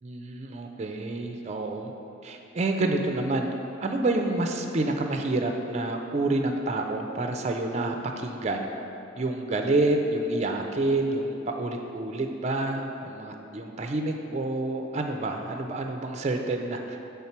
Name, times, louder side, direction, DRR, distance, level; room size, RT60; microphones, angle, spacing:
voice 1, 0.0-1.9 2.2-3.5 3.8-8.7 9.2-17.0, right 2 dB, 35° right, 3 dB, 0.4 m, -28 dB
7.1 x 3.6 x 4.3 m, 2.8 s
head